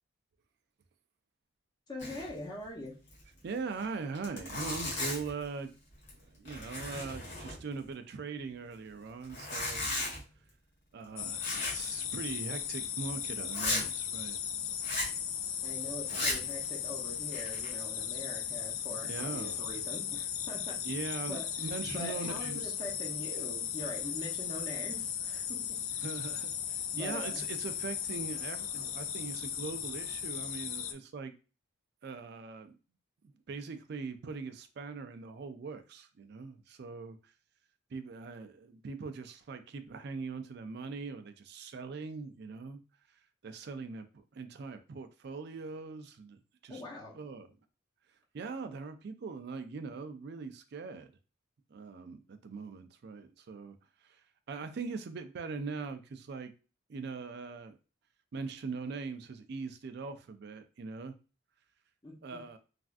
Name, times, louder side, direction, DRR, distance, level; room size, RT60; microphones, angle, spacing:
voice 1, 1.9-2.9 15.6-20.8 21.3-26.0 26.9-27.4 46.7-47.2 62.0-62.4, left 1 dB, 20° left, 0.7 m, -43 dB
Zipper (clothing), 2.0-2.4 2.6-2.7 3.1-3.2 3.8-3.9 4.2-5.4 5.9-6.2 6.5-7.9 9.2-10.2 11.4-11.9 12.2-12.3 12.8-12.9 13.5-13.9 14.8-15.2 16.0-16.5 17.1-17.7, left 2 dB, 55° left, 1.4 m, -35 dB
voice 2, 3.4-5.7 6.1-9.9 10.9-14.4 16.1-16.5 18.9-19.6 20.8-22.7 26.0-31.3 32.0-32.8 33.2-37.3 37.9-42.8 43.4-46.8 47.2-47.5 48.3-51.1 51.7-56.5 56.9-57.8 58.3-61.2 62.2-62.6, right 4 dB, 50° right, 0.3 m, -41 dB
sound 1, 11.2-30.9, left 8 dB, 75° left, 0.4 m, -37 dB
3.3 x 2.5 x 2.4 m
head